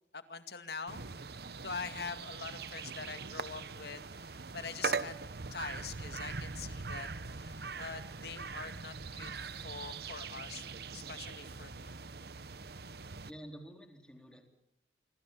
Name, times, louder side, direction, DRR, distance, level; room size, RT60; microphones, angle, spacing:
voice 1, 0.1-1.0 1.6-5.1 5.5-7.1 7.4-10.6 10.9-12.0, left 5 dB, 60° left, 9 dB, 2.2 m, -44 dB
sound 1, 0.9-13.3, right 4 dB, 60° right, 1.0 m, -42 dB
voice 2, 13.3-14.4, equal, 5° left, 4 dB, 3.9 m, -49 dB
27.0 x 24.5 x 7.4 m, 0.71 s
head